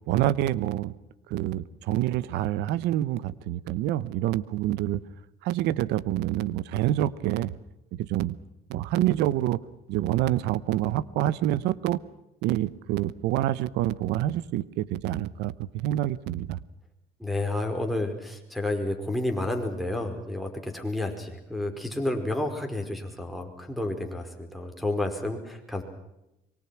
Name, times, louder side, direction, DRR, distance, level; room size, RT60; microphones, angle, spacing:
voice 1, 0.1-0.9 1.3-5.0 5.4-7.5 7.9-8.3 8.7-9.6 9.9-12.0 12.4-16.6, right 13 dB, 90° right, 19 dB, 1.0 m, -27 dB
voice 2, 17.2-25.8, left 1 dB, ahead, 6 dB, 5.0 m, -30 dB
25.0 x 23.5 x 6.0 m, 0.89 s
cardioid pair, 110°, 17 cm